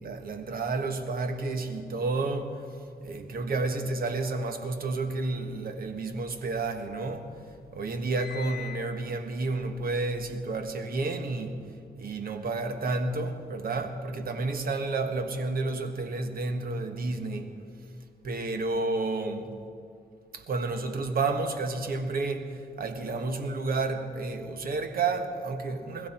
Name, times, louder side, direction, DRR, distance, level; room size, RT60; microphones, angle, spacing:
voice 1, 0.0-2.7 3.0-7.3 7.7-11.6 12.0-17.6 18.2-19.6 20.3-26.1, right 3 dB, 65° right, 1.5 m, -31 dB
sound 1, 6.1-7.2 7.5-10.9, left 10 dB, 75° left, 0.6 m, -46 dB
21.0 x 15.0 x 4.4 m
cardioid pair, 70°, 16 cm